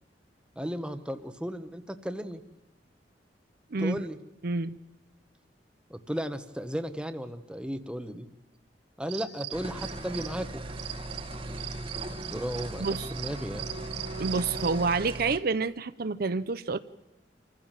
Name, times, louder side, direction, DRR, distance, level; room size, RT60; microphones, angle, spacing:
voice 1, 0.6-2.4 3.8-4.2 5.9-8.3 9.0-10.6 12.3-13.7, equal, 5° right, 9 dB, 1.1 m, -35 dB
voice 2, 4.4-4.8 12.8-13.1 14.2-16.8, right 4 dB, 60° right, 12 dB, 0.7 m, -28 dB
sound 1, 9.1-10.4 10.8-14.9, right 8 dB, 85° right, 3.7 m, -40 dB
sound 2, 9.5-15.4, right 2 dB, 30° right, 1.3 m, -38 dB
27.0 x 15.0 x 7.5 m, 0.99 s
head